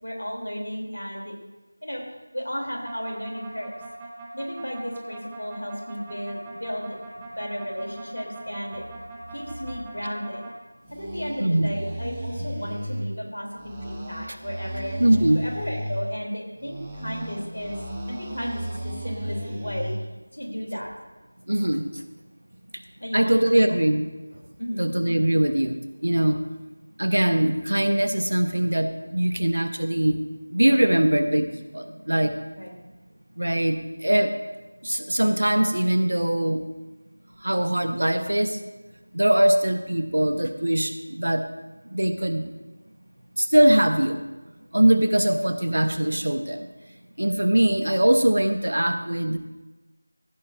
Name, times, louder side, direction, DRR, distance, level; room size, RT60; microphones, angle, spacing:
voice 1, 0.0-1.3 1.8-2.0 2.3-3.7 4.3-6.9 7.4-8.8 9.3-10.5 10.9-15.0 15.3-17.8 18.1-19.9 20.3-20.9 23.0-23.4 23.7-23.8 24.6-24.9 32.5-32.7, equal, 85° left, 0 dB, 3.2 m, -33 dB
sound 1, 2.9-10.5 10.8-13.1 13.5-16.0 16.6-20.0, right 1 dB, 10° right, 0.9 m, -36 dB
voice 2, 11.4-11.7 12.4-12.5 15.0-15.5 21.5-21.9 23.1-24.1 24.8-26.4 27.0-30.2 30.5-32.3 33.4-34.3 34.8-36.6 37.4-38.6 39.1-41.4 41.9-42.5 43.4-44.2 44.7-46.6 47.2-49.4, right 1 dB, 70° right, 8 dB, 1.0 m, -22 dB
15.5 x 9.6 x 2.6 m, 1.2 s
figure-of-eight pair, 170°, 0 cm